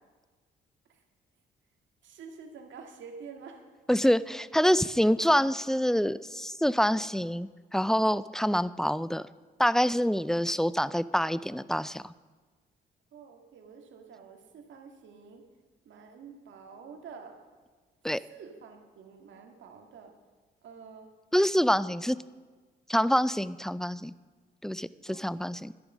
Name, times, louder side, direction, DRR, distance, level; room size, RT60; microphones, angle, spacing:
voice 1, 2.0-3.6 13.1-15.5 15.9-17.4 18.3-20.1 20.6-21.1 21.8-22.1 25.1-25.5, right 5 dB, 70° right, 4 dB, 2.0 m, -48 dB
voice 2, 3.9-9.2 9.6-12.1 18.0-18.2 21.3-22.2 22.9-24.1 24.6-25.7, equal, ahead, 17 dB, 0.3 m, -26 dB
12.5 x 10.5 x 6.1 m, 1.4 s
cardioid pair, 90°, 20 cm